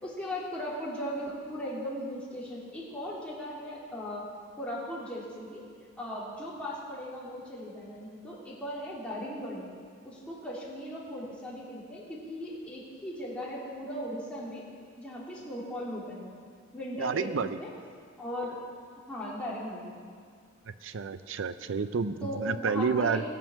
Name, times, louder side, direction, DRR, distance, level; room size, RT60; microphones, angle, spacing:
voice 1, 0.0-4.2 4.6-5.6 6.0-9.7 10.0-14.7 15.0-16.3 16.7-17.7 18.2-18.6 19.1-19.9 22.2-23.2, equal, 5° left, -7 dB, 3.2 m, -38 dB
voice 2, 17.0-17.6 20.8-23.2, right 5 dB, 75° right, 12 dB, 0.5 m, -30 dB
20.0 x 7.7 x 6.3 m, 2.1 s
head